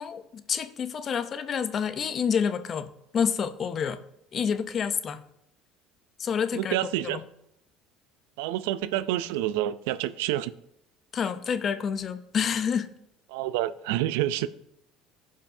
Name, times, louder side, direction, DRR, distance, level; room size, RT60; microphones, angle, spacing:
voice 1, 0.0-4.0 4.3-5.2 6.2-6.8 7.0-7.2 11.1-12.9, left 7 dB, 40° left, 0.6 m, -28 dB
voice 2, 6.5-7.2 8.4-10.5 13.3-14.5, right 13 dB, 85° right, 0.4 m, -28 dB
15.5 x 5.5 x 2.7 m
supercardioid pair, 100°, 0 cm